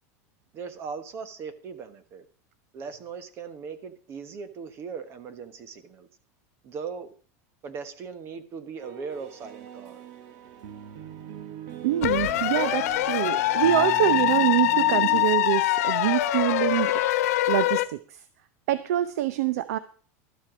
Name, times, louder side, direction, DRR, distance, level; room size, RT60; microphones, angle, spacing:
voice 1, 0.5-2.2 2.7-6.1 6.6-7.1 7.6-10.0, right 5 dB, 30° right, 12 dB, 1.2 m, -39 dB
sound 1, 8.8-15.2, right 11 dB, 50° right, 1.3 m, -40 dB
voice 2, 11.8-17.0 17.5-18.2 18.7-19.8, right 13 dB, 90° right, 14 dB, 0.7 m, -25 dB
sound 2, 12.0-17.9, left 15 dB, 80° left, 1.1 m, -24 dB
12.5 x 7.6 x 6.1 m, 0.41 s
supercardioid pair, 165°, 8 cm